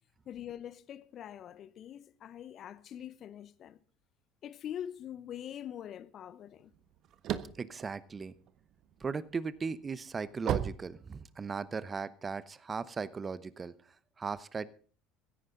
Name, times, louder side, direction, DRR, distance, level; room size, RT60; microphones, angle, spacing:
voice 1, 0.3-3.8 4.4-6.7, left 10 dB, 45° left, 0.8 m, -44 dB
sound 1, 6.7-8.9 9.4-11.6, right 10 dB, 50° right, 1.3 m, -35 dB
voice 2, 7.5-8.3 9.0-14.7, right 5 dB, 25° right, 0.8 m, -38 dB
16.5 x 15.0 x 3.8 m
figure-of-eight pair, 65°, 0 cm